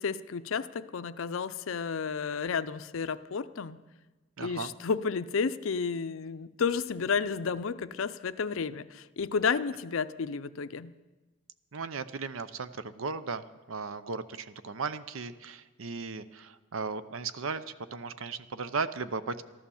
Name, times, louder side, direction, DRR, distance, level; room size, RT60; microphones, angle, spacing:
voice 1, 0.0-3.8 4.4-10.9, left 5 dB, 70° left, 13 dB, 0.5 m, -31 dB
voice 2, 4.4-4.7 11.7-17.6 17.9-19.4, right 4 dB, 70° right, 13 dB, 0.7 m, -36 dB
14.0 x 11.5 x 7.1 m, 1.2 s
head